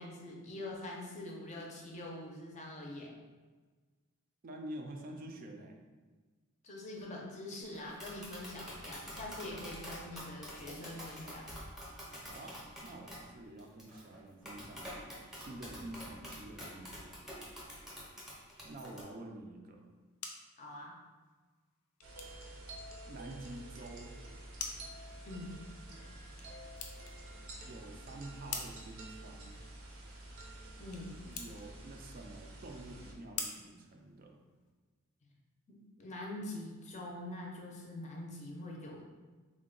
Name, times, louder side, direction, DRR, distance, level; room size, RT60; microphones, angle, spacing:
voice 1, 0.0-3.1 6.6-11.4 20.6-21.0 25.2-25.5 30.8-31.2 36.0-39.1, left 1 dB, 35° left, -1 dB, 0.6 m, -44 dB
voice 2, 4.4-5.8 12.0-15.0 15.3-16.9 18.6-19.9 23.1-24.2 27.6-29.6 31.2-34.4, right 1 dB, 40° right, 2 dB, 0.4 m, -48 dB
Tap, 7.7-19.0, equal, ahead, 0.7 m, -47 dB
sound 1, 19.8-34.7, left 5 dB, 85° left, 0.5 m, -49 dB
sound 2, 22.0-33.1, right 1 dB, 80° right, 0.7 m, -49 dB
3.6 x 2.2 x 3.7 m, 1.4 s
head